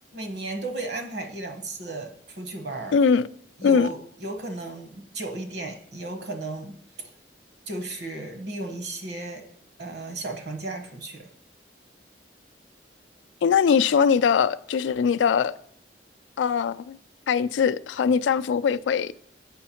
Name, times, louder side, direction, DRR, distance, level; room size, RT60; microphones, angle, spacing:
voice 1, 0.1-3.0 3.6-6.8 7.7-9.4 9.8-11.3, right 2 dB, 65° right, 1.2 m, -34 dB
voice 2, 2.9-3.2 3.6-3.9 13.4-15.5 16.4-17.0 17.3-19.1, left 6 dB, 85° left, 0.3 m, -21 dB
7.8 x 5.6 x 4.4 m
head